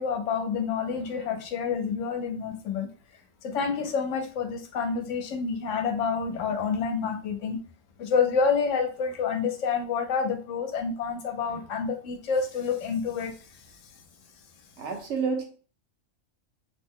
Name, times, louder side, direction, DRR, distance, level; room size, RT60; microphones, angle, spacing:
voice 1, 0.0-2.9 3.4-7.6 8.0-13.3, left 5 dB, 75° left, 5 dB, 0.9 m, -28 dB
voice 2, 14.8-15.4, right 5 dB, 65° right, 2 dB, 1.0 m, -29 dB
2.8 x 2.1 x 3.5 m, 0.39 s
omnidirectional pair, 1.3 m